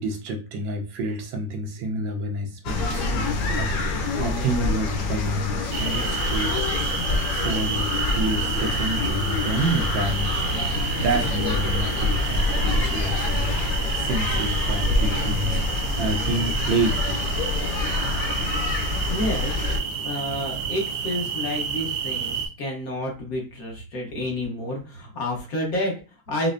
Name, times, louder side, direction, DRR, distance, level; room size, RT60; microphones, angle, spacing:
voice 1, 0.0-6.8 7.3-10.4 11.0-15.6 15.9-17.2, right 2 dB, 85° right, 4 dB, 1.5 m, -28 dB
sound 1, 2.7-19.8, left 2 dB, 85° left, 1.5 m, -26 dB
sound 2, 5.7-22.5, right 6 dB, 70° right, 1.1 m, -30 dB
voice 2, 18.5-19.7 20.0-26.5, left 1 dB, 55° left, -1 dB, 1.4 m, -30 dB
5.3 x 2.1 x 2.5 m, 0.33 s
omnidirectional pair, 2.0 m